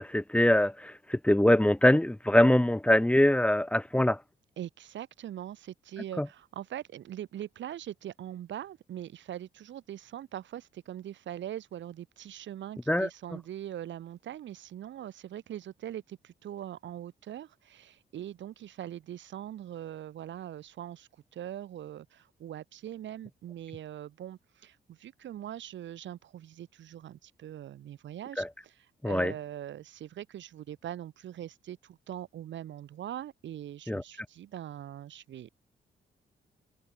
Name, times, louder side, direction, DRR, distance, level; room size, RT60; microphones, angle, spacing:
voice 1, 0.0-4.2 6.2-6.3 12.9-13.1 28.4-28.5 29.0-29.3 33.9-34.0, left 1 dB, 5° left, 0.8 m, -23 dB
voice 2, 4.6-35.5, right 11 dB, 80° right, 3.2 m, -42 dB
cardioid pair, 75°, 19 cm